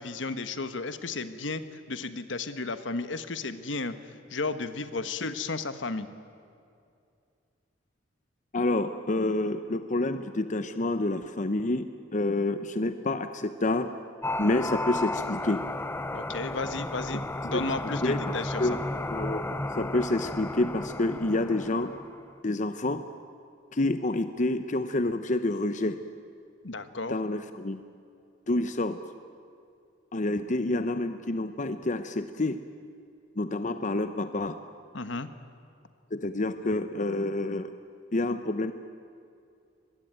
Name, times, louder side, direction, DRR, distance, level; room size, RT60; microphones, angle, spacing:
voice 1, 0.0-6.1 16.1-18.8 26.6-27.2 34.9-35.3, left 3 dB, 70° left, 11 dB, 1.3 m, -33 dB
voice 2, 8.5-13.9 14.4-15.6 17.5-17.6 18.0-18.2 18.6-18.8 19.1-21.9 22.4-23.0 23.7-26.0 27.1-27.8 28.5-29.0 30.1-32.6 33.4-34.6 36.1-37.7 38.1-38.7, left 2 dB, 40° left, 10 dB, 0.8 m, -28 dB
sound 1, 14.2-22.2, left 2 dB, 10° left, 0.6 m, -33 dB
24.0 x 21.0 x 9.0 m, 2.4 s
head